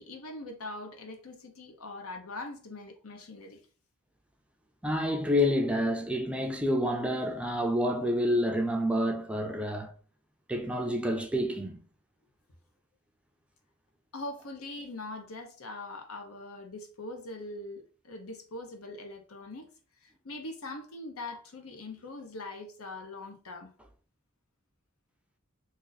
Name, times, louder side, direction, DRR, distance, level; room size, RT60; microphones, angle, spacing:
voice 1, 0.0-3.6 14.1-19.7 20.0-23.7, left 2 dB, 80° left, 0.8 m, -42 dB
voice 2, 4.8-9.9 10.5-11.8, equal, 5° right, 0.4 m, -28 dB
2.6 x 2.5 x 3.9 m
head